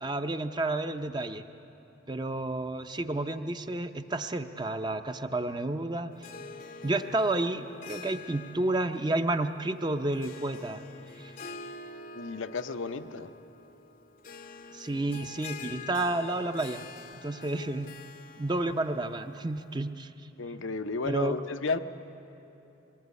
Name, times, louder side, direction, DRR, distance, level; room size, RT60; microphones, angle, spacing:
voice 1, 0.0-1.5 2.1-6.1 6.8-10.8 11.2-11.3 14.7-16.8 17.2-17.9 18.4-20.1 21.0-21.4, right 2 dB, 20° right, 8 dB, 0.6 m, -30 dB
Harp, 6.1-19.9, left 4 dB, 45° left, 0.7 m, -47 dB
voice 2, 12.1-13.3 20.4-21.8, left 4 dB, 80° left, 8 dB, 0.7 m, -33 dB
22.5 x 19.0 x 8.2 m, 3.0 s
head